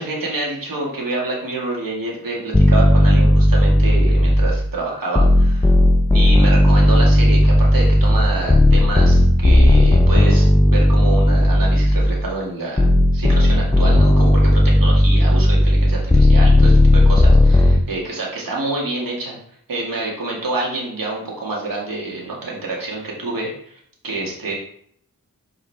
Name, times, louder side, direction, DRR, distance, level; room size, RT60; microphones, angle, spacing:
voice 1, 0.0-5.7 6.1-19.4 19.7-23.7 24.0-24.5, right 2 dB, 80° right, -3 dB, 2.1 m, -27 dB
sound 1, 2.5-4.7 5.2-12.3 12.8-17.8, left 1 dB, 10° left, 0.5 m, -14 dB
8.2 x 3.7 x 3.5 m, 0.64 s
wide cardioid pair, 85°, 34 cm